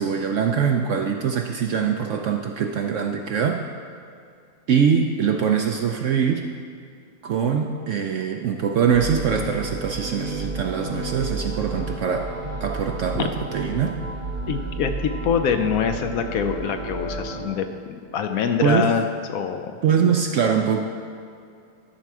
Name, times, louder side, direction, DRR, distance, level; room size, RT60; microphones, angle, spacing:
voice 1, 0.0-3.7 4.7-6.4 7.2-12.3 12.6-14.0 18.6-18.9 19.8-20.8, right 7 dB, 65° right, 3 dB, 0.8 m, -23 dB
sound 1, 8.9-17.5, right 3 dB, 85° right, 2.7 m, -31 dB
voice 2, 14.5-17.7 18.1-19.0 19.3-19.8, left 7 dB, 70° left, 7 dB, 0.9 m, -24 dB
13.0 x 4.4 x 6.0 m, 2.4 s
omnidirectional pair, 1.7 m